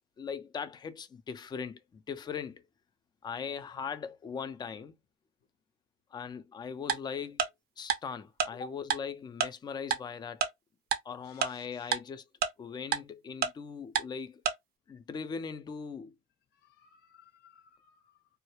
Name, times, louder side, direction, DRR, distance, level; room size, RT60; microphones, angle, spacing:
voice 1, 0.2-2.6 3.2-4.9 6.1-7.4 7.8-10.5 11.0-12.2 12.6-14.4 14.9-16.1, left 6 dB, 25° left, 0.4 m, -40 dB
Tick-tock, 6.9-7.0 7.4-7.5 7.9-8.0 8.4-8.5 8.9-9.0 9.4-9.5 9.9-10.0 10.4-10.5 10.9-11.0 11.4-11.5 11.9-12.0 12.4-12.5 12.9-13.0 13.4-13.5 14.0-14.1 14.5-14.6, right 8 dB, 65° right, 0.5 m, -27 dB
voice 2, 11.3-11.9 16.6-18.2, left 2 dB, 75° left, 0.7 m, -52 dB
2.2 x 2.1 x 2.9 m
cardioid pair, 110°, 17 cm